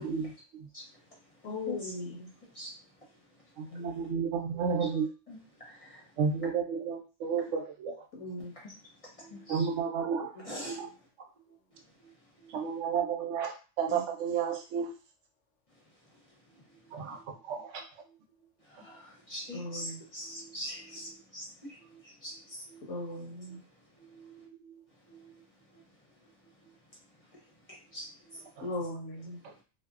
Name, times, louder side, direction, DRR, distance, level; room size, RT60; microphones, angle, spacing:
voice 1, 0.0-0.7 3.6-5.1 6.2-8.0 9.5-10.9 12.5-14.9 16.9-17.2 17.4-17.8 28.6-28.7, right 6 dB, 80° right, 0.9 m, -32 dB
voice 2, 0.7-1.9 2.5-3.1 3.3-3.8 4.8-4.9 5.3-6.1 8.4-9.7 10.4-10.8 11.8-11.9 16.0-16.4 17.1-17.2 18.6-22.7 23.8-23.9 27.1-28.5 29.5-29.6, left 1 dB, 35° left, 0.7 m, -45 dB
voice 3, 1.4-2.3 3.7-3.9 8.1-8.5 10.4-10.5 13.9-14.0 19.5-20.0 22.9-23.6 28.6-29.4, left 2 dB, 75° left, 1.0 m, -38 dB
voice 4, 9.2-9.8 12.0-12.1 12.4-12.7 20.2-20.5 21.9-22.0 22.8-22.9 24.0-24.8 25.1-25.4, right 8 dB, 45° right, 0.8 m, -55 dB
2.6 x 2.1 x 2.4 m
omnidirectional pair, 1.3 m